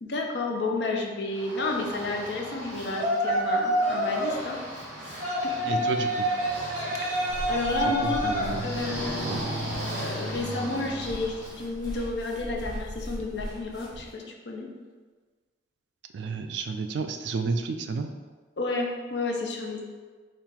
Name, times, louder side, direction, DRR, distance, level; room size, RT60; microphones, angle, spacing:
voice 1, 0.0-4.6 5.4-5.8 7.5-8.3 8.6-9.4 9.9-14.7 18.6-19.8, left 2 dB, 70° left, 1 dB, 0.6 m, -31 dB
Yell, 1.3-11.6, equal, 40° right, 1.3 m, -29 dB
voice 2, 5.6-6.3 7.9-8.7 9.2-9.4 16.1-18.1, right 4 dB, 75° right, 7 dB, 0.3 m, -31 dB
sound 1, 7.3-14.1, equal, 25° left, 0.8 m, -40 dB
3.7 x 2.4 x 4.3 m, 1.4 s
head